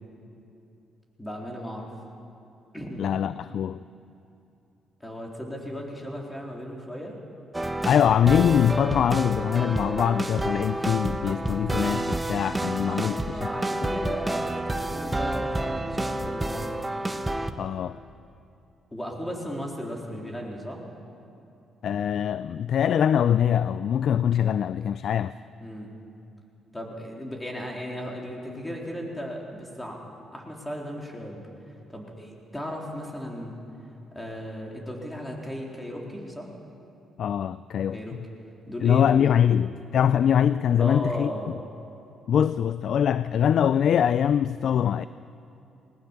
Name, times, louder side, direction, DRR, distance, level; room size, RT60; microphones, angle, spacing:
voice 1, 1.2-1.9 2.7-3.1 5.0-7.2 13.0-16.8 18.9-20.8 25.6-25.9 26.7-30.0 30.3-31.4 31.9-33.5 34.1-36.5 37.9-38.2 38.7-39.5 40.8-41.6, equal, 10° left, 4.0 m, -36 dB
voice 2, 3.0-3.8 7.9-13.5 13.8-14.1 17.6-18.0 21.8-25.3 37.2-38.0 38.8-41.3 42.3-45.1, left 9 dB, 65° left, 0.4 m, -23 dB
sound 1, 7.5-17.5, right 1 dB, 15° right, 1.0 m, -29 dB
20.0 x 19.5 x 7.2 m
cardioid pair, 90°, 0 cm